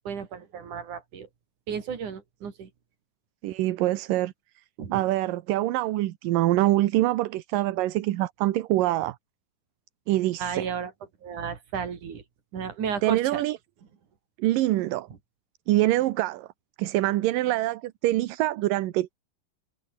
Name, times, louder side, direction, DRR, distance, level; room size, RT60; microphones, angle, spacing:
voice 1, 0.1-1.3 1.7-2.7 4.8-5.0 10.4-10.9 11.2-12.2 12.5-13.4, right 7 dB, 65° right, 4.7 m, -33 dB
voice 2, 3.4-4.3 4.9-9.2 10.1-10.7 13.0-13.6 14.4-15.1 15.7-16.5 16.8-19.1, right 16 dB, 80° right, 2.6 m, -25 dB
omnidirectional pair, 3.9 m